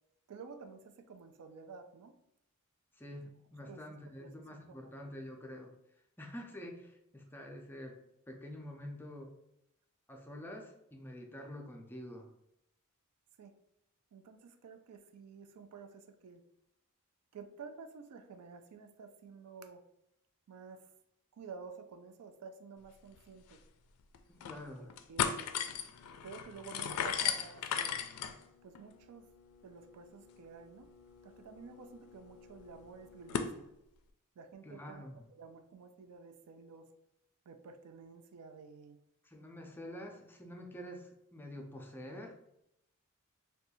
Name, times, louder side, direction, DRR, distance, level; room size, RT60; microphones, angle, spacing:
voice 1, 0.3-2.1 3.7-4.3 4.7-4.9 13.4-13.5 14.1-16.4 17.3-19.8 20.5-20.9 21.4-23.6 24.8-25.5 26.2-28.0 28.6-29.3 29.6-30.9 31.2-33.7 34.4-35.1 35.4-36.9 37.5-39.0, right 5 dB, 85° right, 8 dB, 0.4 m, -51 dB
voice 2, 2.9-5.7 6.2-8.0 8.3-9.3 10.1-12.3 24.3-24.9 34.6-35.2 39.2-42.4, left 1 dB, 10° left, 1 dB, 0.4 m, -47 dB
sound 1, 23.2-23.3 23.5-23.6 24.1-24.6 24.9-33.5, left 8 dB, 80° left, 0.3 m, -39 dB
2.6 x 2.2 x 4.1 m, 0.81 s
head